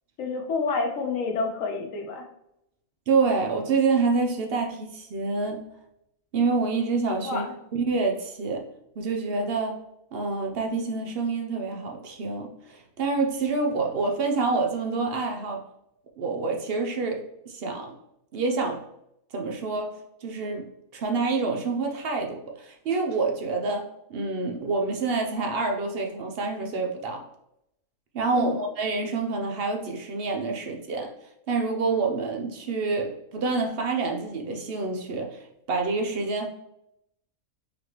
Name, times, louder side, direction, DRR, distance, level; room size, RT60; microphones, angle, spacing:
voice 1, 0.2-2.3 7.2-7.5 28.3-28.5, left 4 dB, 65° left, 2 dB, 1.1 m, -28 dB
voice 2, 3.1-5.6 6.3-8.7 9.0-9.8 10.1-15.6 16.2-17.9 18.3-18.8 19.3-20.7 20.9-27.2 28.1-31.1 31.5-36.5, right 4 dB, 60° right, 3 dB, 0.6 m, -27 dB
4.0 x 3.2 x 2.9 m, 0.82 s
omnidirectional pair, 1.5 m